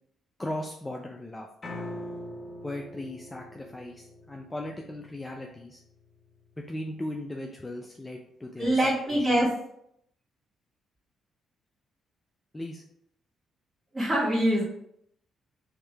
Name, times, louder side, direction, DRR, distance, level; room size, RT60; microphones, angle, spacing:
voice 1, 0.4-1.5 2.6-5.8 6.6-8.8 9.1-9.3 12.5-12.8, left 1 dB, 15° left, 1 dB, 0.5 m, -37 dB
Piano, 1.6-7.8, left 1 dB, 35° left, 1.2 m, -44 dB
voice 2, 8.6-9.5 13.9-14.6, right 1 dB, 20° right, -8 dB, 1.6 m, -24 dB
3.6 x 3.2 x 4.6 m, 0.73 s
cardioid pair, 90°, 0 cm